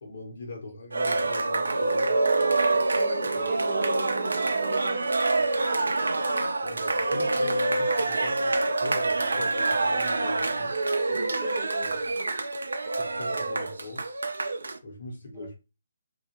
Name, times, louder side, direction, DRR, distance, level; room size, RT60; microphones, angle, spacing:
voice 1, 0.0-2.1 6.6-10.7 11.8-11.9 12.9-14.0 14.8-15.6, left 2 dB, 60° left, 1.1 m, -41 dB
Cheering, 0.9-14.8, right 3 dB, 75° right, 0.4 m, -26 dB
voice 2, 2.9-5.0 11.1-12.3 15.3-15.5, right 1 dB, 15° right, 0.7 m, -41 dB
2.4 x 2.4 x 2.8 m
figure-of-eight pair, 145°, 0 cm